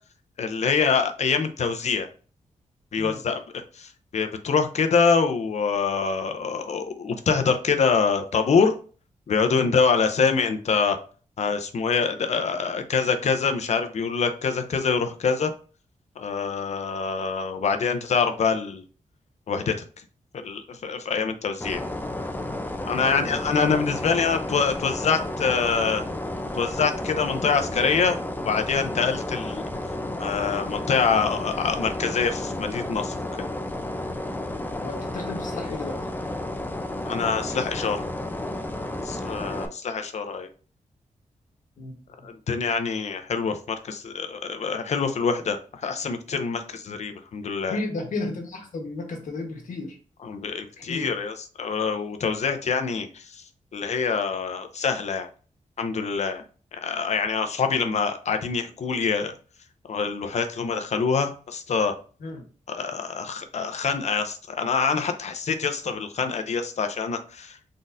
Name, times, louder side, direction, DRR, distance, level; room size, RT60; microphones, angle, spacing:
voice 1, 0.4-2.1 2.9-8.7 9.3-11.0 11.4-15.5 16.2-18.8 19.5-19.7 20.3-21.8 22.8-26.0 26.5-28.2 28.4-29.6 30.2-33.1 37.1-38.0 39.0-40.5 42.2-47.8 50.2-53.4 53.7-55.3 55.8-56.4 56.7-59.3 59.9-61.9 62.7-67.6, left 5 dB, 60° left, 7 dB, 0.6 m, -25 dB
sound 1, 21.6-39.7, left 1 dB, 15° left, 0.5 m, -32 dB
voice 2, 23.0-23.4 34.8-36.0 41.8-42.3 47.7-50.0 50.9-51.1 62.2-62.4, left 3 dB, 80° left, 2 dB, 1.2 m, -33 dB
4.1 x 3.7 x 2.5 m, 0.39 s
wide cardioid pair, 130°, 13 cm